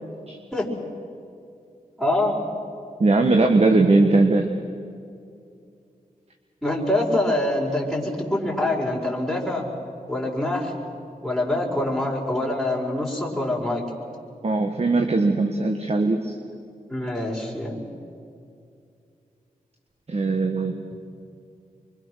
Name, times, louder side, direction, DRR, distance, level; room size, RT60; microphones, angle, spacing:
voice 1, 2.0-2.3 6.6-9.6 10.1-10.7 11.2-13.8 16.9-17.8, left 1 dB, ahead, -3 dB, 5.0 m, -25 dB
voice 2, 3.0-4.5 14.4-16.3 20.1-20.8, right 3 dB, 45° right, 5 dB, 1.5 m, -20 dB
25.0 x 24.0 x 6.4 m, 2.4 s
cardioid pair, 65°, 15 cm